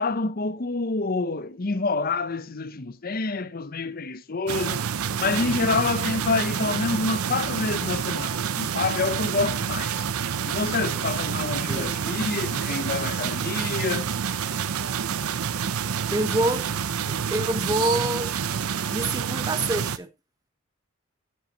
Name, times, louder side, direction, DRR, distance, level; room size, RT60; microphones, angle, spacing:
voice 1, 0.0-4.8 5.2-10.1 10.5-14.1, left 3 dB, 40° left, 0.7 m, -27 dB
sound 1, 4.5-20.0, right 7 dB, 85° right, 0.6 m, -28 dB
voice 2, 11.7-12.1 16.1-16.7 17.1-18.3 18.9-20.1, right 1 dB, 15° right, 0.8 m, -26 dB
10.5 x 7.7 x 2.9 m
head